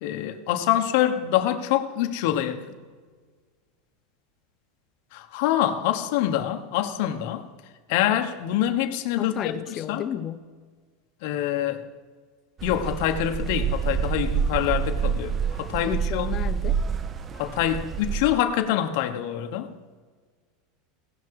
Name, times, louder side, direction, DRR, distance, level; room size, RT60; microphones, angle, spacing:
voice 1, 0.0-2.7 5.1-7.5 7.9-10.0 11.2-11.8 12.6-16.3 17.4-19.7, left 11 dB, 60° left, 1.0 m, -25 dB
voice 2, 9.2-10.4 15.9-16.8, left 10 dB, 30° left, 0.5 m, -32 dB
sound 1, 12.6-18.3, right 7 dB, 25° right, 0.4 m, -27 dB
17.5 x 5.9 x 4.7 m
supercardioid pair, 155°, 0 cm